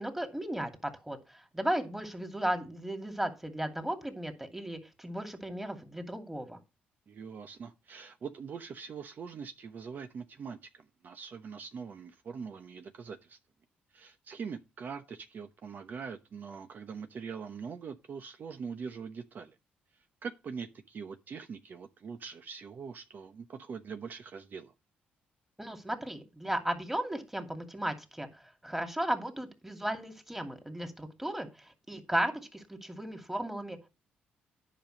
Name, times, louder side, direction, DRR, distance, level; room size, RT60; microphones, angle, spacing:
voice 1, 0.0-6.6 25.6-33.9, right 1 dB, 5° right, 2.6 m, -35 dB
voice 2, 7.1-13.4 13.9-19.6 20.2-24.7, right 6 dB, 50° right, 0.9 m, -43 dB
10.0 x 5.3 x 6.5 m
supercardioid pair, 75°, 4 cm